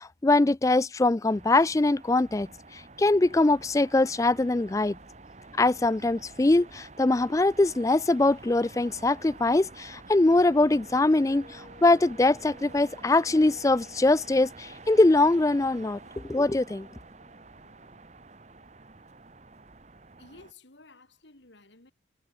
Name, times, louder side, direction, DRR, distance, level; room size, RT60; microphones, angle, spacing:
voice 1, 0.0-2.5 2.7-5.0 5.6-16.9, left 2 dB, 15° left, 0.3 m, -23 dB
sound 1, 1.3-20.5, right 3 dB, 35° right, 1.1 m, -49 dB
sound 2, 9.8-18.0, left 1 dB, 45° left, 1.8 m, -56 dB
voice 2, 20.2-21.9, left 3 dB, 75° left, 3.1 m, -53 dB
head